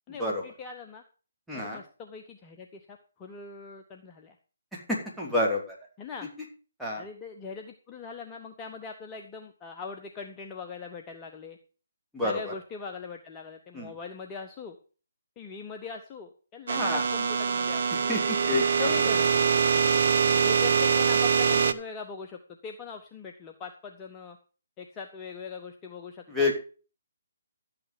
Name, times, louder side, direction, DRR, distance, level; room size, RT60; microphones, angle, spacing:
voice 1, 0.1-1.0 1.5-4.4 6.0-6.3 7.0-11.6 12.2-14.8 15.4-18.0 18.8-19.3 20.4-24.4 24.8-26.5, left 5 dB, 20° left, 4 dB, 1.1 m, -41 dB
voice 2, 1.5-1.8 4.7-5.8 6.8-7.0 12.1-12.5 13.7-13.9 16.7-17.0 18.1-18.9 26.3-26.5, left 2 dB, ahead, -5 dB, 3.2 m, -29 dB
sound 1, 16.7-21.7, right 6 dB, 55° right, 0.9 m, -24 dB
12.5 x 8.8 x 5.1 m, 0.37 s
figure-of-eight pair, 140°, 0 cm